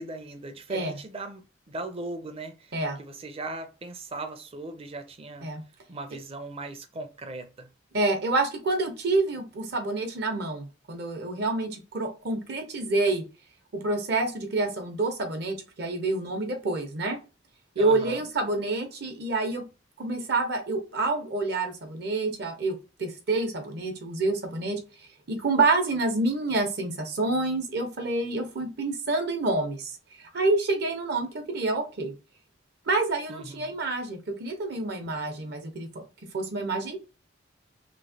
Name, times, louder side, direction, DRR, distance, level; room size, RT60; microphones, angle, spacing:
voice 1, 0.0-5.5 5.9-7.7 17.8-18.2 33.3-33.8, right 2 dB, 30° right, 0.5 m, -39 dB
voice 2, 7.9-13.2 13.8-17.2 17.8-19.6 20.0-24.8 25.3-29.9 30.2-32.1 32.9-35.9 36.3-37.0, right 2 dB, 60° right, 0.8 m, -28 dB
3.0 x 2.8 x 2.7 m
head